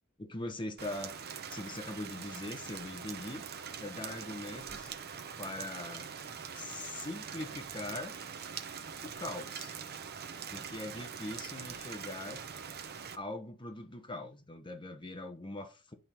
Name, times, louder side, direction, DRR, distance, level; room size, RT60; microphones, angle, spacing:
voice 1, 0.2-1.1 1.5-3.4 3.8-4.9 5.4-6.1 6.5-8.2 9.0-9.7 10.5-12.4 13.2-15.9, left 2 dB, 20° left, 1.1 m, -41 dB
Rain, 0.8-13.1, right 7 dB, 45° right, 0.8 m, -43 dB
10.5 x 3.7 x 4.5 m
head